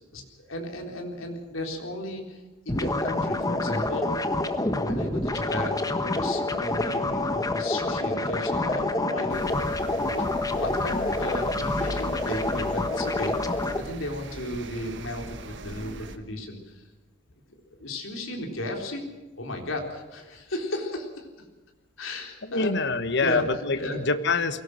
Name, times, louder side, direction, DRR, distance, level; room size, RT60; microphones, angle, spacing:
voice 1, 0.1-4.1 4.8-16.8 17.8-19.0 19.4-21.3 22.0-22.7 23.2-24.0, left 1 dB, 80° left, 2 dB, 3.8 m, -35 dB
sound 1, 2.7-13.8, left 2 dB, 20° left, 1.3 m, -27 dB
sound 2, 9.3-16.2, right 1 dB, 60° right, 1.5 m, -39 dB
voice 2, 22.5-24.6, left 3 dB, 60° left, 11 dB, 1.4 m, -25 dB
23.0 x 17.5 x 6.4 m, 1.2 s
head